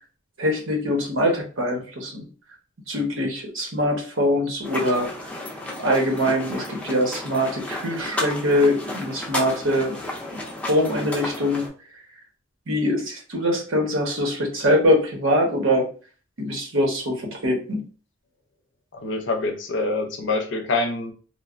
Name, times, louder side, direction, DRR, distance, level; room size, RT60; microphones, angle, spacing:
voice 1, 0.4-2.3 2.9-5.3 5.8-9.9 10.3-11.6 12.7-15.9 16.4-17.8, equal, 75° right, 1 dB, 0.9 m, -23 dB
sound 1, 4.6-11.7, left 1 dB, 5° left, 0.4 m, -33 dB
voice 2, 18.9-21.1, left 3 dB, 60° left, 6 dB, 0.5 m, -25 dB
3.1 x 2.0 x 2.4 m, 0.39 s
head